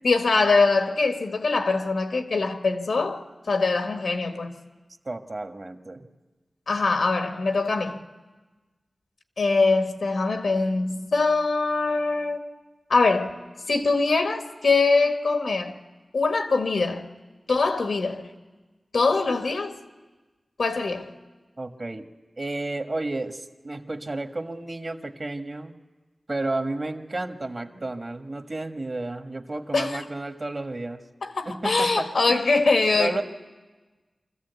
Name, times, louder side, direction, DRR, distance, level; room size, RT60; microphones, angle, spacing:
voice 1, 0.0-4.5 6.7-8.0 9.4-12.4 12.9-13.4 13.7-15.8 16.1-17.1 17.5-18.3 18.9-19.8 20.6-21.1 29.7-30.0 31.2-33.2, left 3 dB, 90° left, 1.5 m, -23 dB
voice 2, 5.0-6.1 21.6-22.1 22.4-25.7 26.3-31.0 31.4-32.4 32.9-33.2, right 2 dB, 45° right, 1.5 m, -32 dB
25.0 x 14.5 x 8.2 m
wide cardioid pair, 75°, 0 cm